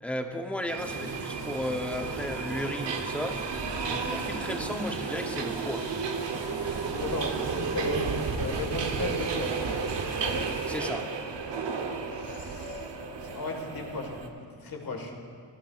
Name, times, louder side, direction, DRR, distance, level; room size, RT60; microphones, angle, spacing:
voice 1, 0.0-3.4 3.9-5.9 10.7-11.1, left 1 dB, 5° left, 4 dB, 0.7 m, -34 dB
Subway metro underground, 0.7-14.3, right 5 dB, 75° right, 1.0 m, -33 dB
sound 1, 0.8-10.8, right 1 dB, 50° right, 3.4 m, -42 dB
voice 2, 6.9-9.5 12.1-12.9 13.2-14.2 14.5-15.1, left 3 dB, 55° left, 2 dB, 1.7 m, -36 dB
17.0 x 15.0 x 2.4 m, 2.1 s
wide cardioid pair, 125°, 43 cm